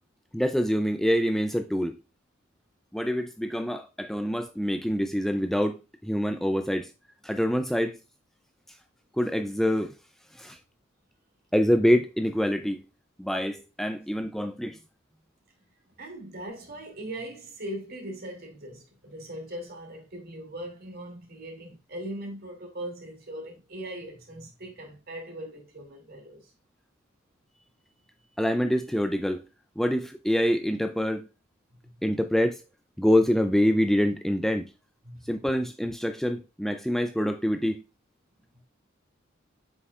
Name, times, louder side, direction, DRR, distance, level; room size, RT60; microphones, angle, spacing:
voice 1, 0.3-1.9 2.9-6.9 7.2-8.0 9.2-9.9 10.4-10.6 11.5-12.8 13.2-14.8 28.4-29.4 29.8-31.3 32.0-32.6 33.0-34.7 35.3-37.8, equal, ahead, 0.4 m, -25 dB
voice 2, 16.0-26.5 35.0-35.3, right 1 dB, 50° right, 2.5 m, -40 dB
7.9 x 5.7 x 2.3 m
head